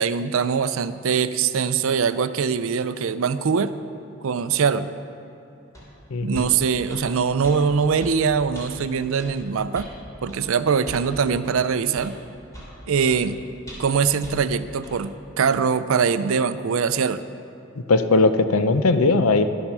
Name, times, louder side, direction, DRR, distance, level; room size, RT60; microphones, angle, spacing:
voice 1, 0.0-3.7 4.2-4.9 6.2-9.9 10.2-12.1 12.9-13.4 13.8-17.2, right 6 dB, 75° right, 13 dB, 0.5 m, -22 dB
sound 1, 5.7-5.9 6.3-6.5 6.9-7.1 7.4-7.6 8.0-8.2 8.5-8.7 9.2-9.3 9.7-9.9 10.3-10.4 10.9-11.1 11.4-11.6 12.0-12.1 12.5-12.7 13.1-13.2 13.7-13.9 14.2-14.4 14.8-15.0, equal, 15° left, 3.1 m, -40 dB
voice 2, 6.1-6.5 17.9-19.4, left 3 dB, 90° left, 10 dB, 0.6 m, -19 dB
11.5 x 8.8 x 6.1 m, 2.7 s
head